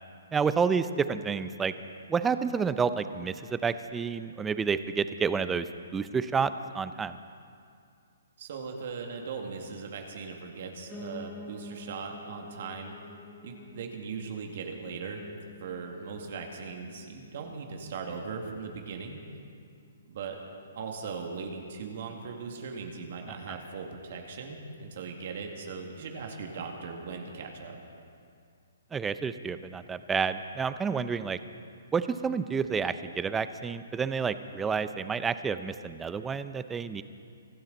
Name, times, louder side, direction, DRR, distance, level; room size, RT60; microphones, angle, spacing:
voice 1, 0.3-1.7 2.1-5.7 5.9-7.2 23.5-23.6 28.9-31.4 31.9-37.0, right 5 dB, 10° right, 12 dB, 0.6 m, -29 dB
voice 2, 8.4-12.9 13.4-15.2 15.6-19.2 20.1-20.4 20.8-27.8, right 5 dB, 55° right, 2 dB, 2.2 m, -39 dB
Piano, 10.9-20.0 20.4-21.6 21.8-21.9 22.2-22.3 22.5-22.6 23.2-23.3, left 3 dB, 10° left, 1.2 m, -50 dB
25.0 x 12.5 x 4.1 m, 2.4 s
hypercardioid pair, 130°, 0 cm